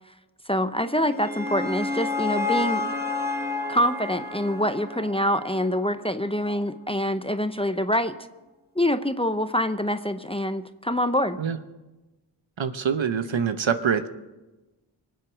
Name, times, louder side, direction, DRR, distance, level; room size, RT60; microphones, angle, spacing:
voice 1, 0.5-2.9 3.7-8.2 8.8-11.4, equal, 10° left, 10 dB, 0.7 m, -25 dB
sound 1, 0.8-6.0, left 3 dB, 20° right, 1.6 m, -30 dB
voice 2, 12.6-14.1, right 7 dB, 70° right, 10 dB, 1.0 m, -25 dB
24.0 x 8.0 x 6.3 m, 1.1 s
wide cardioid pair, 55°, 48 cm